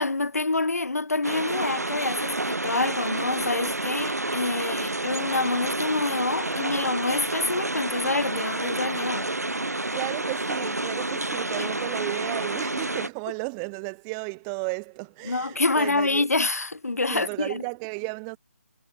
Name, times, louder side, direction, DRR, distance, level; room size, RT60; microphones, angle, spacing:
voice 1, 0.0-9.3 11.6-11.7 15.2-17.6, left 3 dB, 70° left, 2.1 m, -27 dB
sound 1, 1.2-13.1, right 2 dB, 85° right, 1.1 m, -29 dB
voice 2, 9.9-16.3 17.1-18.4, right 40 dB or more, 15° right, 1.7 m, -34 dB
figure-of-eight pair, 145°, 9 cm